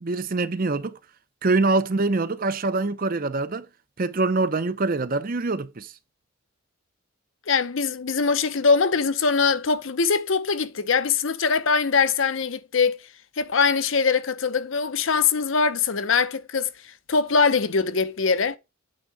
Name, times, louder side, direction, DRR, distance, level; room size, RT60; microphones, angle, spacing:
voice 1, 0.0-1.0 1.4-3.6 4.0-5.9, right 3 dB, 40° right, 0.6 m, -24 dB
voice 2, 7.5-13.0 13.4-16.7 17.1-18.6, left 5 dB, 65° left, 0.7 m, -22 dB
8.6 x 3.6 x 4.7 m
head